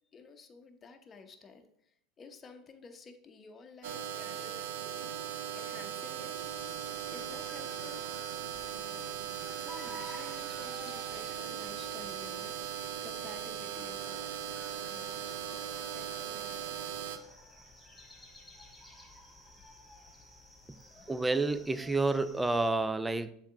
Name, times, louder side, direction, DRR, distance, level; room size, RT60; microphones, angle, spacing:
voice 1, 0.1-5.1 5.5-6.8 7.1-8.0 8.7-14.3 14.7-15.3 15.9-16.6, left 4 dB, 30° left, 6 dB, 0.9 m, -53 dB
sound 1, 3.8-17.2, right 9 dB, 75° right, 0.5 m, -39 dB
sound 2, 6.3-22.7, left 1 dB, 5° left, 2.3 m, -53 dB
voice 2, 21.1-23.3, right 3 dB, 10° right, 12 dB, 0.4 m, -29 dB
7.1 x 3.5 x 3.7 m, 0.71 s
hypercardioid pair, 90°, 0 cm